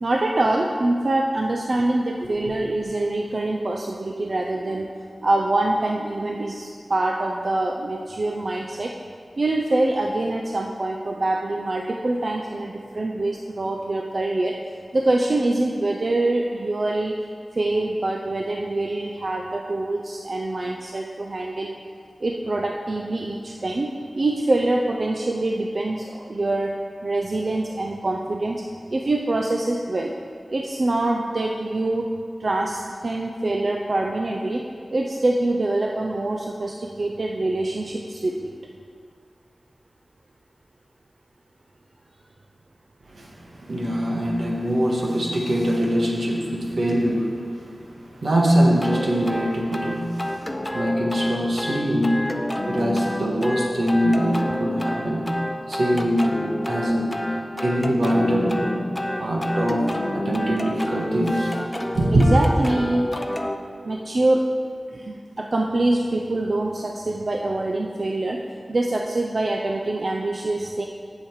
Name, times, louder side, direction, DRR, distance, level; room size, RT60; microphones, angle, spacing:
voice 1, 0.0-8.9 9.4-14.6 14.9-17.1 17.5-21.7 22.2-26.7 27.0-28.6 28.9-30.1 30.5-32.1 32.4-34.6 34.9-38.5 62.1-63.1 63.8-64.5 64.9-68.4 68.7-70.9, right 2 dB, 55° right, 1 dB, 0.5 m, -24 dB
voice 2, 43.6-47.4 47.9-50.4 50.7-52.2 52.7-55.3 55.7-56.2 56.7-57.2 57.6-58.7 59.2-59.8 60.1-61.5 61.9-62.3, equal, 80° right, -2 dB, 1.4 m, -22 dB
sound 1, 48.8-63.6, left 1 dB, 20° left, 0.5 m, -29 dB
7.6 x 7.4 x 4.8 m, 2.2 s
wide cardioid pair, 95°, 0 cm